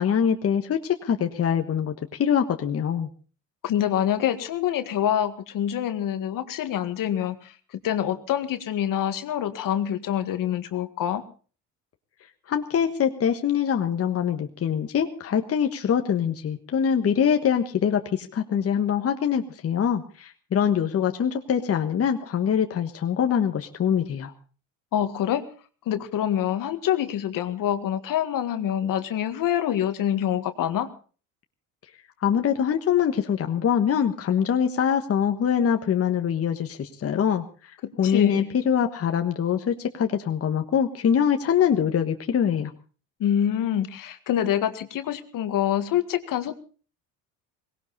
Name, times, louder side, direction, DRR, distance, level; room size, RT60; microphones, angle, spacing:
voice 1, 0.0-3.1 12.5-24.3 32.2-42.7, left 8 dB, 40° left, 5 dB, 1.4 m, -24 dB
voice 2, 3.6-7.5 7.8-11.2 24.9-25.4 25.9-30.9 37.8-38.5 43.2-46.5, left 10 dB, 60° left, 9 dB, 1.8 m, -26 dB
19.0 x 17.5 x 4.1 m, 0.38 s
supercardioid pair, 95°, 37 cm